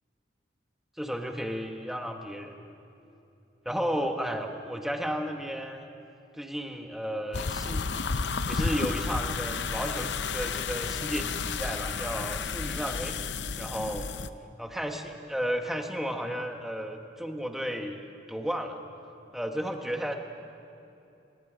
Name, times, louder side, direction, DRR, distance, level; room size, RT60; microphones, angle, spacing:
voice 1, 1.0-2.5 3.6-5.9 6.3-7.8 8.5-13.2 13.6-14.1 14.6-18.0 18.3-18.8 19.3-20.2, equal, ahead, 4 dB, 1.3 m, -33 dB
sound 1, 7.3-14.3, left 5 dB, 75° left, 0.7 m, -32 dB
29.5 x 20.5 x 5.1 m, 2.9 s
head